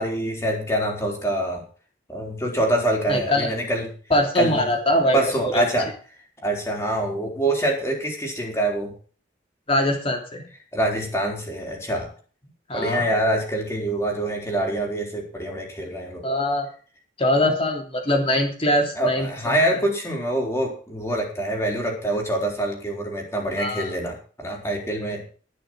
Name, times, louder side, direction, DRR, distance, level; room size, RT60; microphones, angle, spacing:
voice 1, 0.0-1.6 2.1-3.9 4.4-4.6 5.1-5.9 6.4-8.9 10.7-12.1 12.7-16.2 19.0-25.2, right 1 dB, 15° left, 0 dB, 4.0 m, -25 dB
voice 2, 3.1-3.5 4.1-5.7 9.7-10.5 12.7-13.1 16.2-16.7 17.2-19.6 23.6-23.9, left 1 dB, 30° left, 3 dB, 3.1 m, -22 dB
19.0 x 6.4 x 6.3 m, 0.40 s
head